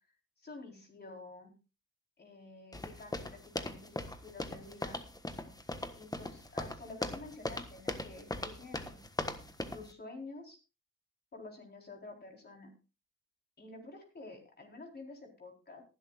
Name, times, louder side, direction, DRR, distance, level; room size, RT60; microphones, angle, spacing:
voice 1, 0.4-1.5 2.2-5.0 5.9-9.0 9.7-10.6 11.3-12.7 13.6-15.8, left 3 dB, 35° left, 1 dB, 4.1 m, -50 dB
sound 1, 2.7-9.9, left 2 dB, 10° left, 1.3 m, -39 dB
19.5 x 11.0 x 2.5 m, 0.31 s
cardioid pair, 90°, 30 cm